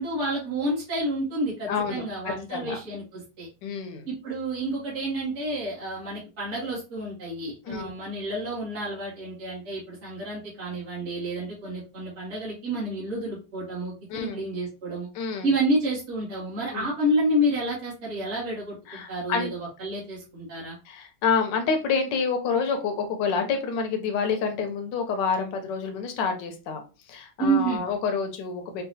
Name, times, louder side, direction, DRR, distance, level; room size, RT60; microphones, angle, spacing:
voice 1, 0.0-3.5 4.1-15.1 15.4-20.8 27.4-27.9, right 1 dB, 45° right, -8 dB, 1.6 m, -29 dB
voice 2, 1.7-2.0 2.5-2.8 3.6-4.1 7.7-7.9 14.1-14.4 15.1-15.5 16.7-16.9 18.9-19.5 20.9-26.8 27.1-28.8, left 5 dB, 90° left, 5 dB, 1.4 m, -28 dB
4.6 x 2.4 x 2.7 m, 0.32 s
omnidirectional pair, 1.9 m